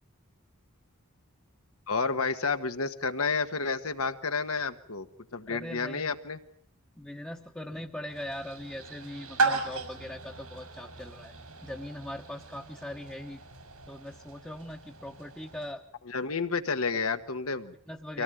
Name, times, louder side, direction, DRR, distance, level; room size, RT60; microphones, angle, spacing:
voice 1, 1.9-5.1 5.3-6.4 16.1-17.7 18.1-18.2, left 4 dB, 70° left, 8 dB, 1.4 m, -30 dB
voice 2, 5.5-6.1 7.0-11.3 11.6-13.4 13.9-15.8 17.9-18.2, left 1 dB, 5° left, -1 dB, 1.1 m, -40 dB
sound 1, 8.1-15.7, right 3 dB, 85° right, 5.4 m, -36 dB
24.5 x 17.5 x 9.2 m, 0.64 s
head